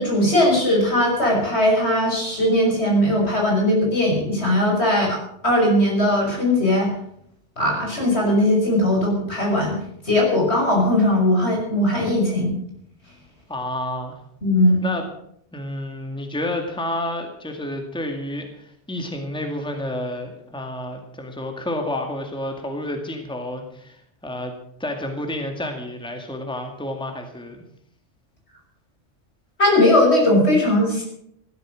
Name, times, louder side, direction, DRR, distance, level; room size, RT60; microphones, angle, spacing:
voice 1, 0.0-6.9 7.6-9.8 10.0-12.6 14.4-14.8 29.6-31.0, left 1 dB, 65° left, -1 dB, 6.2 m, -19 dB
voice 2, 13.5-14.2 14.8-15.1 15.5-24.5 24.8-27.6, left 1 dB, 5° left, 3 dB, 2.0 m, -30 dB
15.5 x 12.5 x 6.2 m, 0.70 s
omnidirectional pair, 1.2 m